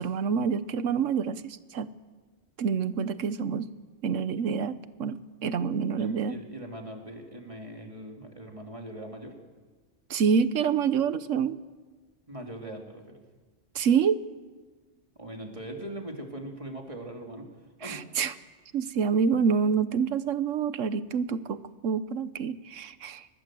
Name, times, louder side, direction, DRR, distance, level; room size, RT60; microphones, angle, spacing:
voice 1, 0.0-1.9 2.6-3.7 4.0-6.4 10.1-11.6 13.7-14.2 17.8-18.3 18.7-23.3, right 6 dB, 80° right, 15 dB, 1.2 m, -27 dB
voice 2, 6.0-9.3 12.3-13.2 15.1-17.5 17.8-18.1, right 1 dB, 25° right, 2 dB, 3.0 m, -41 dB
24.0 x 19.5 x 7.7 m, 1.4 s
omnidirectional pair, 1.3 m